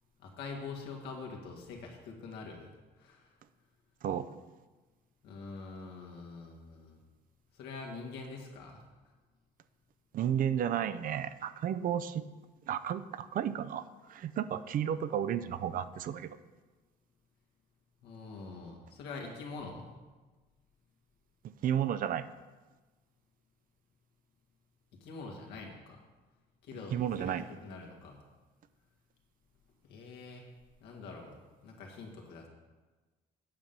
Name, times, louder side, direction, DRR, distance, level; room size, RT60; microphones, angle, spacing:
voice 1, 0.2-2.7 3.0-3.3 5.2-7.0 7.5-8.8 18.0-19.9 25.0-26.0 26.6-28.2 29.8-30.5 30.8-31.4 31.6-32.5, left 4 dB, 85° left, 1 dB, 1.9 m, -45 dB
voice 2, 4.0-4.4 10.1-12.2 12.7-13.8 14.1-16.4 21.6-22.2 26.9-27.5, right 9 dB, 55° right, 13 dB, 0.5 m, -32 dB
8.8 x 5.3 x 7.4 m, 1.3 s
cardioid pair, 110°, 17 cm